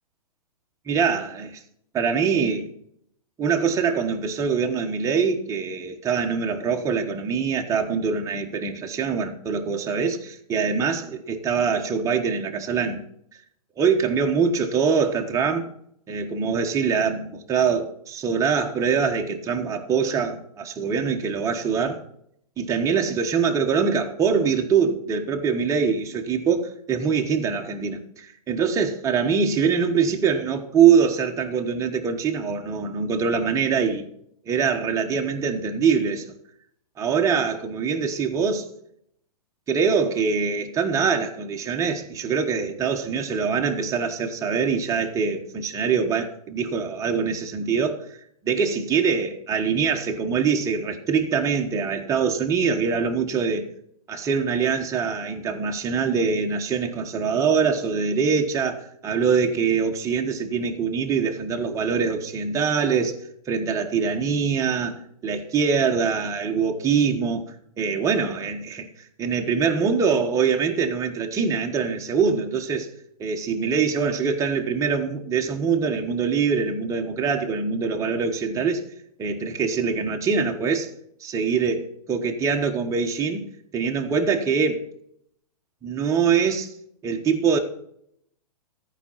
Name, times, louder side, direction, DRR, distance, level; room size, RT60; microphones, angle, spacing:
voice 1, 0.9-1.6 1.9-2.7 3.4-13.0 13.8-15.7 16.1-22.0 22.6-34.1 34.5-36.3 37.0-38.7 39.7-48.1 48.4-53.7 54.1-63.2 63.5-67.4 67.8-68.9 69.2-72.9 73.2-78.8 79.2-80.9 81.2-83.5 83.7-84.8 85.8-86.7 87.0-87.6, right 6 dB, 15° right, 1.1 m, -23 dB
14.0 x 5.0 x 5.7 m
hypercardioid pair, 120°, 20 cm